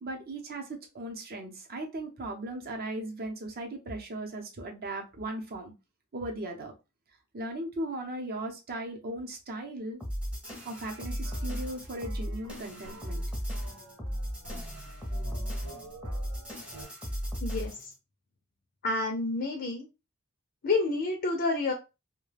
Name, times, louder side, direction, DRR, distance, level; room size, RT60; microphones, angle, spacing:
voice 1, 0.0-5.7 6.1-6.7 7.3-10.0 10.6-13.2, right 1 dB, 45° right, 2 dB, 0.7 m, -37 dB
sound 1, 10.0-17.9, equal, 5° right, 0.7 m, -36 dB
sound 2, 10.4-16.8, right 1 dB, 75° right, 0.9 m, -48 dB
voice 2, 17.4-17.9 18.8-19.9 20.6-21.7, left 3 dB, 45° left, 2 dB, 0.5 m, -29 dB
2.3 x 2.2 x 3.2 m, 0.27 s
head